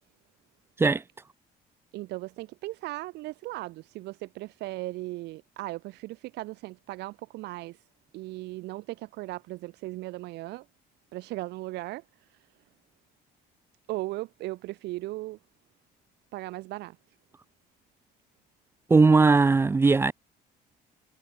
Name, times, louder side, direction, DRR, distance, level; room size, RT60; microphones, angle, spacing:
voice 1, 1.9-7.9 8.1-10.7 11.1-12.5 13.9-15.4 16.3-17.0, right 19 dB, 85° right, 2.8 m, -37 dB
voice 2, 18.9-20.1, right 4 dB, 15° right, 0.3 m, -19 dB
cardioid pair, 110°, 17 cm